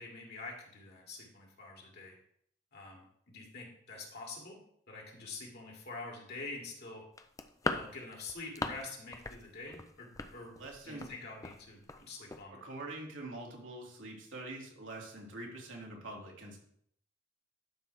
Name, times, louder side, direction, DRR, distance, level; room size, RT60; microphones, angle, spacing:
voice 1, 0.0-2.2 2.7-4.6 4.9-7.0 7.6-10.6 10.8-12.6, left 3 dB, 55° left, -1 dB, 2.5 m, -46 dB
sound 1, 7.2-8.9 9.1-9.4 9.7-11.1 11.4-11.6 11.9-12.0 12.3-12.4, left 3 dB, 20° left, 0.5 m, -38 dB
voice 2, 10.6-11.1 12.5-16.6, right 2 dB, 85° right, -2 dB, 2.5 m, -45 dB
11.5 x 6.0 x 3.4 m, 0.67 s
head